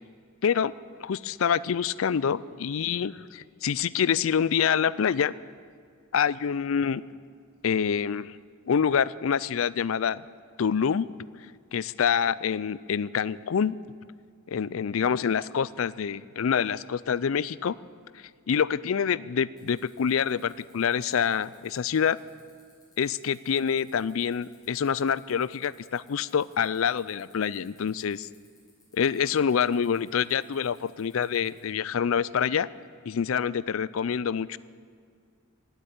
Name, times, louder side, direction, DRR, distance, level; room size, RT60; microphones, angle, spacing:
voice 1, 0.4-0.7 1.0-5.3 6.1-7.0 7.6-8.4 8.7-10.2 10.6-11.3 11.7-13.8 14.5-17.8 18.1-22.2 23.0-28.3 28.9-32.7 33.0-34.6, left 7 dB, 75° left, 20 dB, 0.4 m, -26 dB
sound 1, 19.6-31.6, left 4 dB, 20° left, 5.6 m, -61 dB
18.0 x 8.1 x 9.4 m, 2.1 s
head